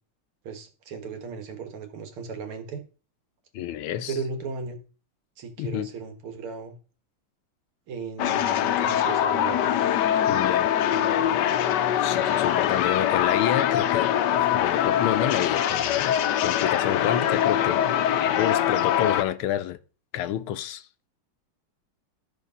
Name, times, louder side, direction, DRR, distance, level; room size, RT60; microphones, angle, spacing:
voice 1, 0.4-2.8 4.1-4.8 5.4-6.8 7.9-9.6, right 5 dB, 85° right, 2.4 m, -36 dB
voice 2, 3.5-4.1 5.6-5.9 10.3-10.7 12.0-14.1 14.4-19.8 20.1-20.9, left 11 dB, 85° left, 1.6 m, -29 dB
sound 1, 8.2-19.2, left 10 dB, 65° left, 1.2 m, -23 dB
13.0 x 5.2 x 5.5 m
omnidirectional pair, 2.3 m